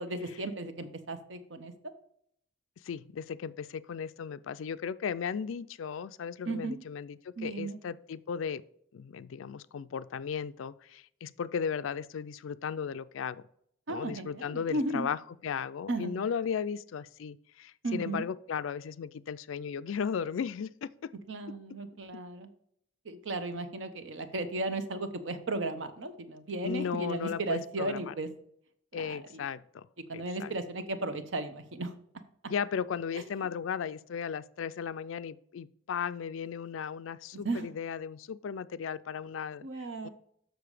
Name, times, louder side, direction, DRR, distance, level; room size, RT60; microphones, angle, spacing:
voice 1, 0.0-1.7 6.4-6.8 7.4-7.8 13.9-15.1 15.9-16.2 17.8-18.3 21.3-22.5 23.0-28.3 28.9-29.4 30.1-31.9 37.4-37.7 39.6-40.1, right 2 dB, 70° right, 0.9 m, -35 dB
voice 2, 2.8-8.6 8.9-13.4 13.9-21.1 26.6-28.1 28.9-29.9 30.1-30.5 32.5-39.7 40.0-40.1, left 7 dB, 85° left, 0.4 m, -36 dB
6.8 x 6.3 x 4.9 m
head